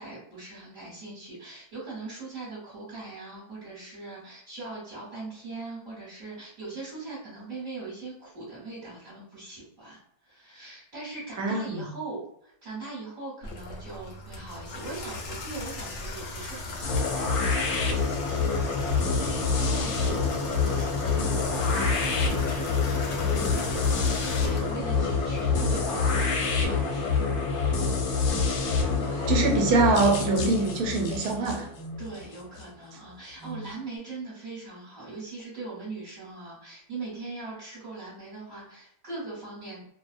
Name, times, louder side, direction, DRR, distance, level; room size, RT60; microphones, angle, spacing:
voice 1, 0.0-18.8 19.2-22.6 23.0-27.7 28.8-29.4 32.0-39.9, right 3 dB, 35° right, -8 dB, 1.0 m, -41 dB
voice 2, 11.4-11.9 29.3-31.7, right 3 dB, 80° right, 1 dB, 1.1 m, -24 dB
Water tap faucet / Bathtub (filling or washing), 13.4-26.2, left 2 dB, 70° left, 0.7 m, -38 dB
sound 1, 16.8-32.6, left 4 dB, 85° left, 1.1 m, -26 dB
sound 2, 28.3-28.5 30.0-30.3 31.7-32.0 33.4-33.7, right 1 dB, 10° right, 0.9 m, -40 dB
2.5 x 2.1 x 2.4 m, 0.72 s
omnidirectional pair, 1.6 m